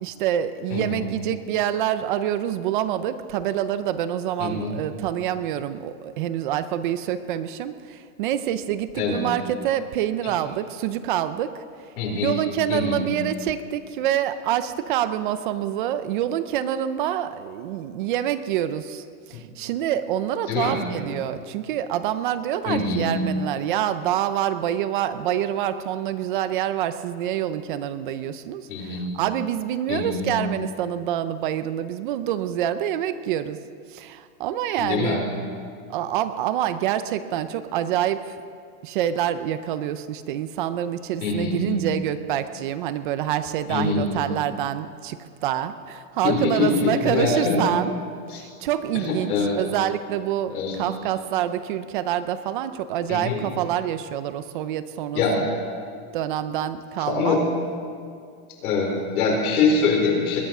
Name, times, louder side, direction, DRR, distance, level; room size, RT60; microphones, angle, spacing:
voice 1, 0.0-11.6 12.1-33.6 33.9-35.2 35.9-38.4 38.8-47.9 48.3-55.5 56.1-57.4, right 11 dB, 35° right, 12 dB, 0.5 m, -26 dB
voice 2, 0.7-1.0 4.4-4.7 9.0-9.2 12.0-12.3 12.7-13.0 20.5-20.7 22.6-23.1 28.7-29.1 29.9-30.3 34.8-35.2 41.2-41.7 43.7-44.1 46.2-47.6 48.3-48.4 49.3-49.6 50.5-50.8 53.1-53.4 55.1-55.3 57.1-57.4 58.6-60.4, left 4 dB, 90° left, 0 dB, 4.8 m, -23 dB
20.5 x 10.5 x 6.0 m, 2.3 s
supercardioid pair, 175°, 43 cm